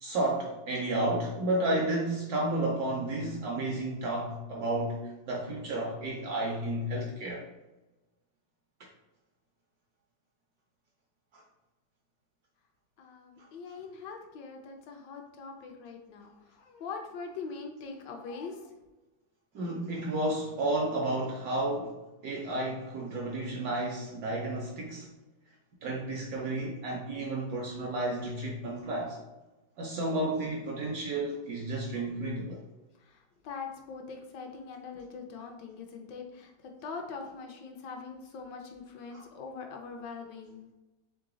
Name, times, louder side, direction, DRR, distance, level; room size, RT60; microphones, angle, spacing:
voice 1, 0.0-7.5 11.3-11.4 13.4-13.5 19.5-25.1 25.8-29.2 29.8-32.6 39.1-39.2, right 1 dB, 70° right, -1 dB, 0.9 m, -32 dB
voice 2, 13.0-18.7 33.0-36.5 36.8-40.7, left 5 dB, 75° left, 3 dB, 1.2 m, -42 dB
3.8 x 3.3 x 3.7 m, 1.1 s
omnidirectional pair, 2.1 m